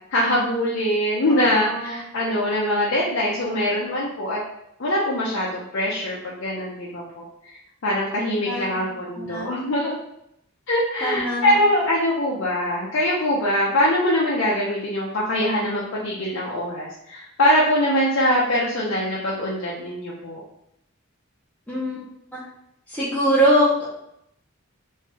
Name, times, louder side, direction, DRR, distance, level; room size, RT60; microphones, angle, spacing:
voice 1, 0.1-4.4 4.8-7.5 7.8-9.9 10.7-20.4, left 1 dB, 65° left, -6 dB, 0.7 m, -23 dB
voice 2, 1.3-1.9 8.5-8.8 9.2-9.7 11.0-11.5 21.7-22.0 22.3-22.4 22.9-23.9, equal, 5° left, -10 dB, 0.8 m, -23 dB
3.1 x 2.7 x 3.4 m, 0.79 s
head